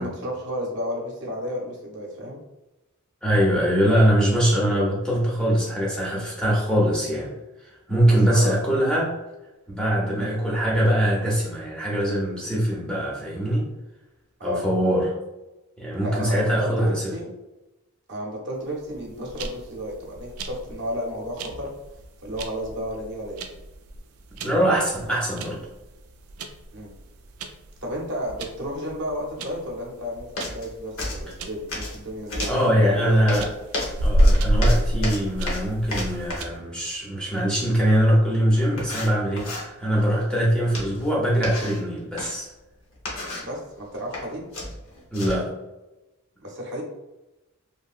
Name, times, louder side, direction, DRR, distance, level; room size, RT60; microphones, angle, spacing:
voice 1, 0.0-2.4 8.1-8.6 10.2-10.4 14.4-14.7 16.0-17.3 18.1-21.7 22.2-23.4 26.7-26.9 27.8-33.5 43.4-44.5 46.4-46.8, equal, 50° right, -1 dB, 0.7 m, -32 dB
voice 2, 3.2-7.3 7.9-9.1 9.7-13.7 14.4-15.1 15.8-17.0 24.4-25.6 32.5-33.5 34.0-42.5 45.1-45.5, equal, 5° left, -5 dB, 0.5 m, -22 dB
sound 1, 18.9-36.4, equal, 80° right, 0.3 m, -28 dB
sound 2, 30.4-30.7 31.0-32.0 32.3-32.6 33.3-36.6 38.1-38.2 38.8-39.7 40.7-41.1 41.4-42.3 42.9-43.5 43.9-44.2 44.5-45.5, left 1 dB, 65° left, 0.9 m, -32 dB
2.8 x 2.6 x 2.4 m, 1.0 s
head